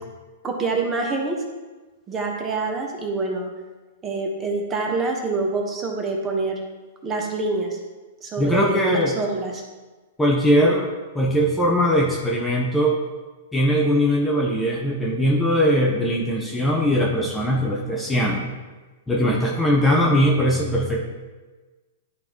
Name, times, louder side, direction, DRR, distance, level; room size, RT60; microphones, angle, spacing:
voice 1, 0.4-1.4 2.1-3.5 4.0-6.6 7.0-7.8 8.2-9.6, right 3 dB, 20° right, 1 dB, 1.3 m, -26 dB
voice 2, 8.4-9.1 10.2-10.9 11.1-13.0 13.5-18.5 19.1-21.0, equal, 5° left, -3 dB, 0.9 m, -20 dB
11.5 x 3.9 x 3.0 m, 1.3 s
hypercardioid pair, 110°, 0 cm